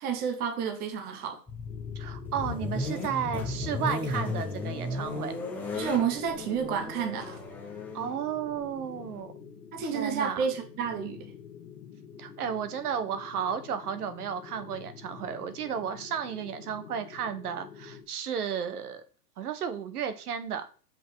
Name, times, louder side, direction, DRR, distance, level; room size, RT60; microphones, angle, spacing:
voice 1, 0.0-1.4 5.7-7.4 9.7-11.2, right 7 dB, 20° right, 0.9 m, -30 dB
sound 1, 1.5-9.2, left 2 dB, 5° left, 0.5 m, -35 dB
sound 2, 1.7-18.1, left 7 dB, 70° left, 1.9 m, -48 dB
voice 2, 1.9-5.3 7.9-9.3 9.8-10.5 12.2-19.0 19.4-20.7, right 8 dB, 65° right, 1.2 m, -33 dB
6.3 x 5.0 x 4.7 m
hypercardioid pair, 150°, 48 cm